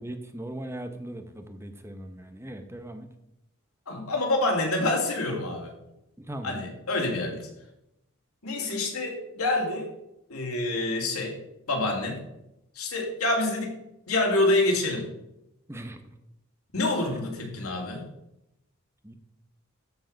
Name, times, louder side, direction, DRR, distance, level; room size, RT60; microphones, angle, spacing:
voice 1, 0.0-3.1 6.2-6.6 15.7-16.0 17.1-17.3 19.0-19.1, right 1 dB, 10° right, 7 dB, 0.8 m, -39 dB
voice 2, 3.9-5.7 6.4-7.5 8.4-9.9 10.3-11.4 11.7-12.2 12.8-13.8 14.1-15.1 16.7-18.0, left 2 dB, 90° left, 1 dB, 2.5 m, -27 dB
14.0 x 4.8 x 5.2 m, 0.87 s
head